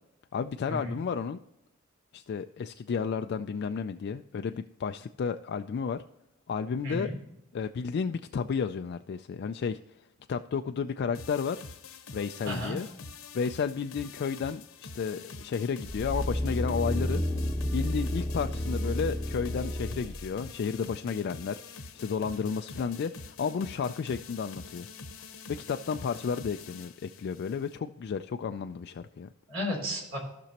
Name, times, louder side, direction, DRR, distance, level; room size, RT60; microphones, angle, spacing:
voice 1, 0.3-1.4 2.1-6.0 6.5-7.1 7.5-9.8 10.3-11.6 12.1-12.9 13.3-17.2 17.7-24.9 25.5-29.3, left 6 dB, 50° left, 7 dB, 0.3 m, -32 dB
voice 2, 6.8-7.1 12.4-12.8 29.5-30.2, left 1 dB, 65° right, 1 dB, 3.3 m, -33 dB
sound 1, 11.1-27.8, left 4 dB, 80° left, 0.9 m, -46 dB
sound 2, 15.9-20.3 20.7-20.8, left 1 dB, 5° right, 1.0 m, -31 dB
15.0 x 6.0 x 2.9 m, 0.90 s
head